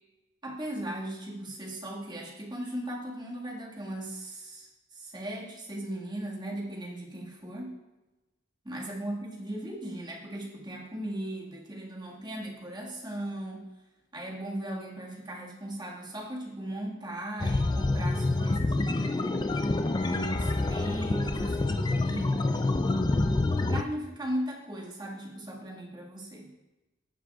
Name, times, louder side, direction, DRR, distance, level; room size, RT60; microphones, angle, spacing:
voice 1, 0.4-7.8 8.6-13.7 14.1-19.5 19.9-23.2 23.7-26.5, right 1 dB, 20° right, -3 dB, 1.7 m, -38 dB
sound 1, 17.4-23.8, left 2 dB, 20° left, 0.3 m, -27 dB
14.5 x 7.4 x 2.4 m, 1.1 s
head